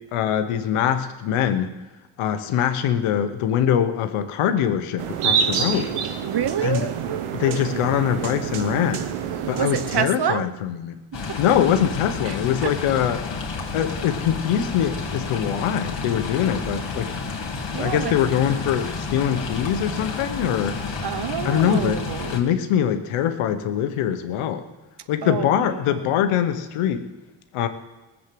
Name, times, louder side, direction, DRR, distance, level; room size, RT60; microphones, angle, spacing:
voice 1, 0.0-1.7 2.2-5.9 6.6-6.9 7.3-9.0 9.5-11.0 11.4-13.2 13.7-17.1 17.8-20.8 21.4-22.0 22.3-24.6 25.1-27.0 27.5-27.7, left 9 dB, 90° left, 9 dB, 1.1 m, -23 dB
sound 1, 5.0-10.1, right 7 dB, 85° right, 1.2 m, -27 dB
voice 2, 6.2-6.9 9.6-10.5 11.1-11.4 12.2-12.4 12.6-12.7 17.7-18.1 21.0-22.4 25.2-25.5 25.8-26.0, right 9 dB, 50° right, 13 dB, 1.0 m, -27 dB
sound 2, 11.1-22.4, left 4 dB, 60° left, 2.7 m, -30 dB
18.5 x 7.5 x 7.6 m, 1.2 s
supercardioid pair, 45°, 49 cm